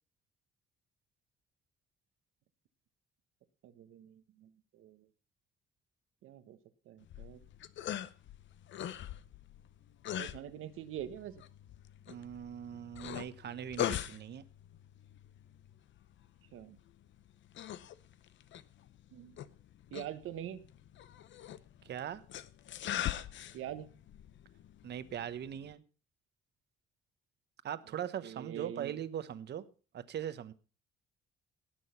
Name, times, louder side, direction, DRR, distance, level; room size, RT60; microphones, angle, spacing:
voice 1, 3.6-5.1 6.2-6.6 6.9-7.5 10.2-11.4 16.5-16.8 19.1-19.4 19.9-20.6 23.5-23.9 28.2-28.9, right 11 dB, 80° right, 12 dB, 1.2 m, -44 dB
sound 1, 7.0-25.7, left 11 dB, 65° left, 0.7 m, -43 dB
voice 2, 12.1-14.4 21.8-22.2 24.8-25.8 27.6-29.7 29.9-30.5, right 9 dB, 55° right, 13 dB, 1.0 m, -40 dB
18.0 x 6.3 x 5.7 m, 0.37 s
cardioid pair, 125°, 21 cm